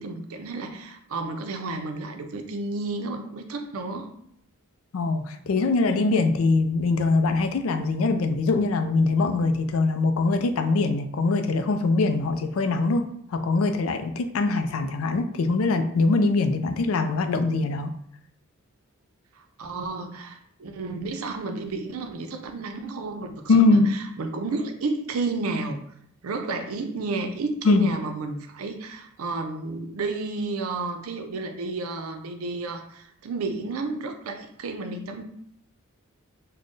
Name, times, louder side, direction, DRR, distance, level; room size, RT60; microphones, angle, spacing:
voice 1, 0.0-4.1 19.4-23.3 23.7-25.8 26.2-35.2, right 3 dB, 80° right, 6 dB, 0.5 m, -31 dB
voice 2, 4.9-18.0 23.5-23.9 27.6-27.9, left 3 dB, 75° left, 8 dB, 0.4 m, -22 dB
4.1 x 2.1 x 3.1 m, 0.70 s
head